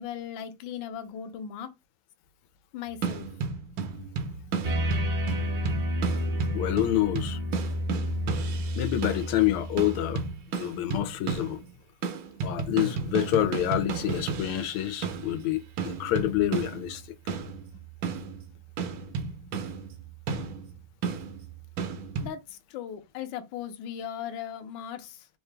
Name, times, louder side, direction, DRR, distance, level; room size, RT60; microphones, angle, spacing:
voice 1, 0.0-1.7 2.7-3.3 17.7-17.8 22.2-25.3, left 9 dB, 70° left, 1.3 m, -38 dB
sound 1, 2.9-9.4 9.8-11.7 12.0-22.3, right 5 dB, 70° right, 1.5 m, -34 dB
sound 2, 4.6-10.3, equal, 40° right, 0.8 m, -30 dB
voice 2, 6.5-7.4 8.8-10.2 10.6-11.6 12.4-17.0, left 13 dB, 85° left, 1.5 m, -27 dB
3.9 x 2.8 x 3.2 m
omnidirectional pair, 2.3 m